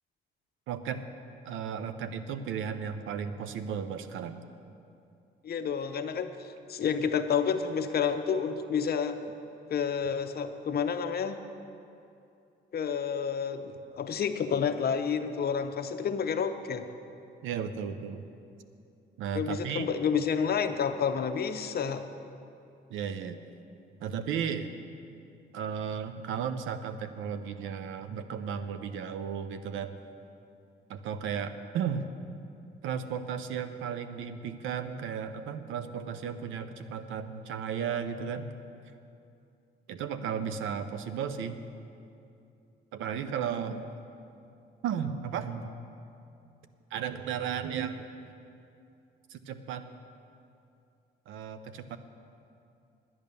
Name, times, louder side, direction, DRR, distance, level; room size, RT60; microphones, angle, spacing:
voice 1, 0.7-1.0 1.4-4.4 17.4-18.2 19.2-19.9 22.9-23.4 24.0-24.7 25.5-30.0 30.9-32.1 32.8-38.5 39.9-41.6 42.9-43.9 44.8-45.8 46.9-48.1 49.3-49.8 51.3-52.0, right 7 dB, 85° right, 10 dB, 0.7 m, -34 dB
voice 2, 5.4-9.2 9.7-11.4 12.7-16.8 19.3-22.0, left 7 dB, 50° left, 8 dB, 0.8 m, -30 dB
10.5 x 8.8 x 6.8 m, 2.6 s
cardioid pair, 90°, 20 cm